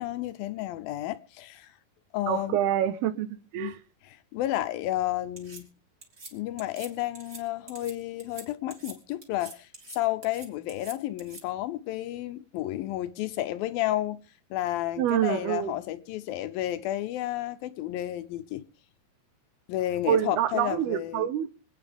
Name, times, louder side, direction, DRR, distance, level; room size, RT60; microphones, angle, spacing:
voice 1, 0.0-1.7 2.1-2.6 3.6-3.7 4.3-5.7 6.3-14.2 14.5-18.7 19.7-21.3, left 14 dB, 75° left, 2.4 m, -31 dB
voice 2, 2.3-3.8 15.0-15.8 20.1-21.5, right 11 dB, 80° right, 3.0 m, -27 dB
sound 1, 5.4-5.6 6.0-6.3 6.6-6.9 7.1-7.4 7.7-7.9 8.2-8.4 8.7-8.9 9.2-10.0 10.2-11.4, right 3 dB, 25° right, 3.2 m, -44 dB
25.5 x 9.3 x 3.5 m
omnidirectional pair, 4.5 m